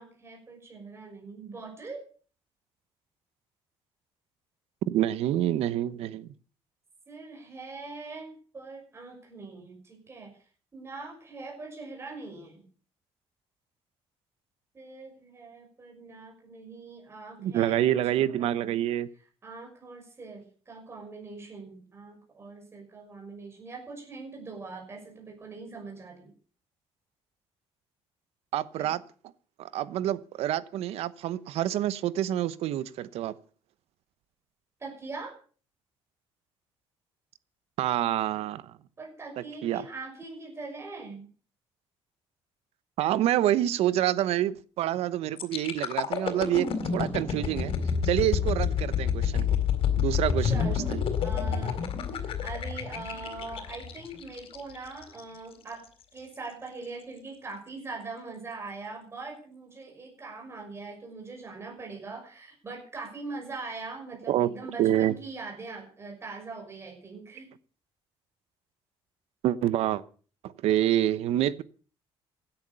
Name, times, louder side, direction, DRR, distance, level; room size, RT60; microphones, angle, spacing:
voice 1, 0.0-2.0 7.1-10.3 10.7-12.6 14.7-18.7 19.4-26.3 28.8-28.9 34.8-35.4 39.0-41.2 50.4-51.8 52.2-55.9 56.1-67.5, right 3 dB, 25° right, 6.1 m, -42 dB
voice 2, 4.8-6.3 17.4-19.1 28.5-29.0 29.6-33.4 37.8-38.7 39.4-39.8 43.0-47.7 48.0-49.6 50.0-51.0 64.3-64.5 64.8-65.1 69.4-70.0 70.4-71.6, right 12 dB, 80° right, 1.0 m, -27 dB
sound 1, 45.4-55.2 55.7-55.9, left 7 dB, 60° left, 4.2 m, -29 dB
16.5 x 10.5 x 6.9 m
cardioid pair, 135°, 10 cm